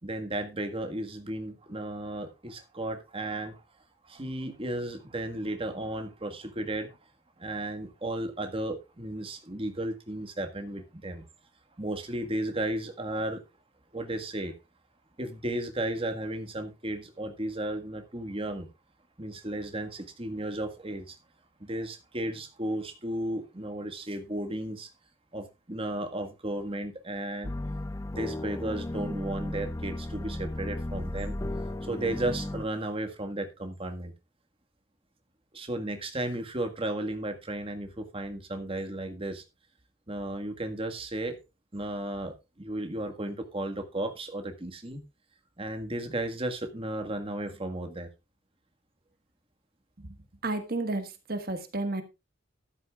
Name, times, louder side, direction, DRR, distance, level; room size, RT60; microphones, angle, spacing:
voice 1, 0.0-3.6 4.0-6.9 7.4-11.2 11.8-13.4 13.9-14.5 15.2-18.7 19.2-21.2 21.6-24.9 25.3-27.5 28.1-31.3 31.8-34.1 35.5-39.4 40.1-41.4 41.7-45.0 45.6-48.1, right 1 dB, 30° right, 6 dB, 1.7 m, -34 dB
sound 1, 27.4-32.7, left 1 dB, 15° left, 0.5 m, -35 dB
voice 2, 50.4-52.0, right 2 dB, 50° right, 8 dB, 1.5 m, -31 dB
13.5 x 12.0 x 2.4 m, 0.25 s
head